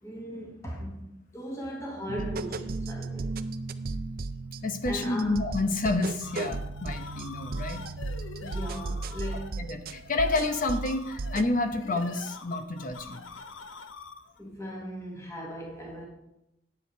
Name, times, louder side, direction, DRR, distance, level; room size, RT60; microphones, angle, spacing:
voice 1, 0.0-1.1 1.3-3.3 4.9-5.4 8.4-9.7 14.4-16.1, equal, 15° left, 1.6 m, -38 dB
sound 1, 2.1-11.6, right 3 dB, 50° right, 0.5 m, -35 dB
voice 2, 4.6-7.8 9.6-13.2, left 2 dB, 45° left, 0.9 m, -29 dB
sound 2, 6.2-14.4, left 4 dB, 85° left, 0.7 m, -45 dB
10.0 x 8.0 x 4.5 m
head